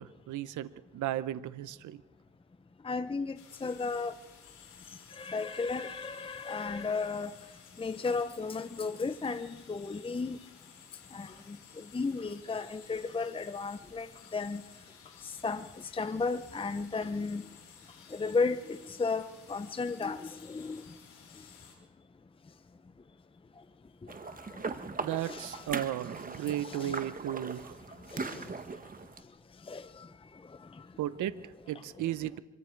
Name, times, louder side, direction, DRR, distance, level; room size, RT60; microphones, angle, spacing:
voice 1, 0.0-2.0 25.0-27.8 31.0-32.4, right 12 dB, 75° right, 15 dB, 0.9 m, -35 dB
voice 2, 2.8-4.2 5.1-7.3 7.8-10.4 11.1-14.6 15.2-17.4 18.1-20.9 24.5-24.6 25.2-25.7 26.4-27.0 28.1-28.5 29.6-30.1 30.5-30.9, left 4 dB, 20° left, 12 dB, 0.7 m, -34 dB
sound 1, 3.3-21.7, left 7 dB, 85° left, 6.2 m, -55 dB
sound 2, 24.1-29.2, right 4 dB, 30° right, 1.4 m, -40 dB
25.5 x 23.0 x 4.6 m, 1.2 s
cardioid pair, 90°, 30 cm